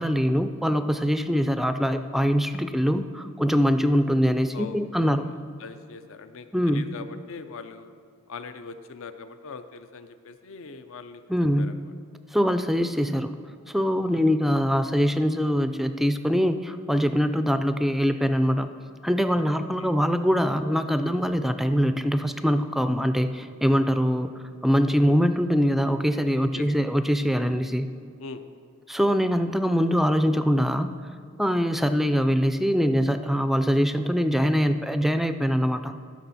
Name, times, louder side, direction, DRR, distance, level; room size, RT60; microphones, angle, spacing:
voice 1, 0.0-5.3 6.5-6.8 11.3-11.7 12.3-13.4 13.7-18.7 19.0-24.3 24.6-27.9 28.9-30.9 31.4-35.9, equal, ahead, 9 dB, 0.3 m, -23 dB
voice 2, 4.5-5.3 5.6-7.9 8.3-11.2 11.6-11.9 14.1-14.3 19.5-20.0 25.0-25.2 26.5-26.7 28.2-28.4, left 4 dB, 65° left, 10 dB, 0.6 m, -41 dB
14.5 x 6.3 x 4.1 m, 2.4 s
head